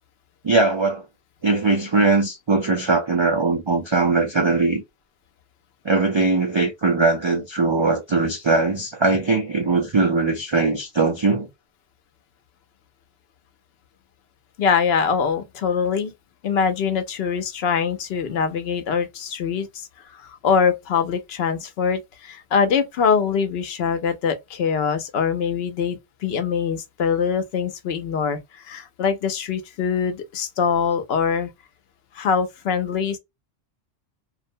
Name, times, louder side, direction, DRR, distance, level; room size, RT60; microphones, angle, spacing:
voice 1, 0.4-1.1 1.4-4.8 5.8-11.5, right 3 dB, 40° right, 0.4 m, -20 dB
voice 2, 14.6-16.1 16.4-31.5 32.1-33.2, left 6 dB, 75° left, 0.9 m, -23 dB
2.4 x 2.1 x 2.6 m
omnidirectional pair, 1.1 m